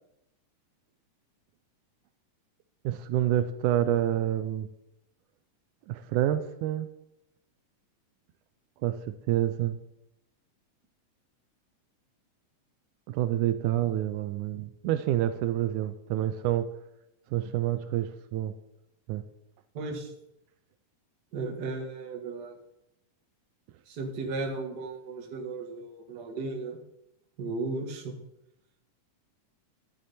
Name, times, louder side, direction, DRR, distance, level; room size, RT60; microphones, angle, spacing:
voice 1, 2.9-4.7 5.9-6.9 8.8-9.8 13.1-16.7 17.3-18.5 19.1-19.2, right 12 dB, 80° right, 11 dB, 2.1 m, -28 dB
voice 2, 19.7-20.1 21.3-22.6 23.9-26.8 27.4-28.2, right 3 dB, 40° right, 2 dB, 1.8 m, -35 dB
12.5 x 10.5 x 4.2 m, 0.82 s
omnidirectional pair, 3.6 m